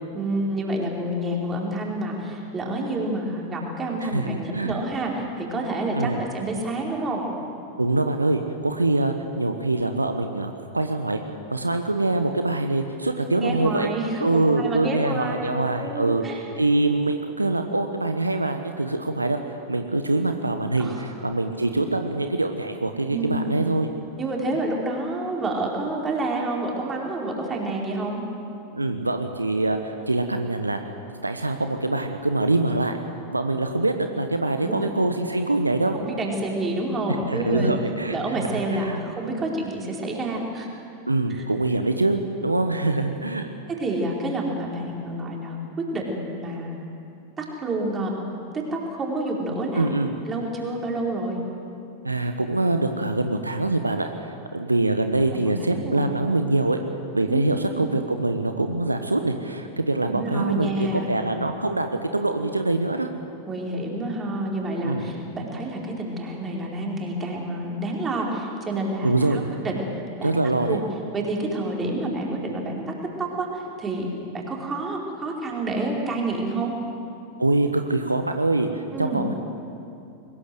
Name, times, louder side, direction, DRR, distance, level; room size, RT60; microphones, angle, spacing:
voice 1, 0.1-7.3 13.4-16.4 20.8-21.0 23.1-23.5 24.2-28.2 34.6-34.9 35.9-37.8 38.1-40.7 41.3-41.4 43.8-46.8 47.4-48.2 48.5-49.9 50.3-51.4 55.3-56.1 57.3-57.9 60.1-61.1 63.5-69.8 70.2-70.3 70.7-70.8 71.1-76.7 78.9-79.3, right 2 dB, 20° right, -1 dB, 4.6 m, -28 dB
voice 2, 4.0-4.8 5.9-6.2 7.8-11.2 11.5-13.9 14.2-16.2 16.6-23.9 28.7-30.8 31.2-33.0 33.3-36.0 37.3-38.2 38.5-39.0 41.1-43.5 49.7-50.1 52.0-56.8 57.1-63.1 64.8-65.1 69.0-69.4 70.2-70.8 77.4-79.3, right 2 dB, 85° right, 7 dB, 1.2 m, -24 dB
22.0 x 20.0 x 7.9 m, 2.7 s
figure-of-eight pair, 90°, 0 cm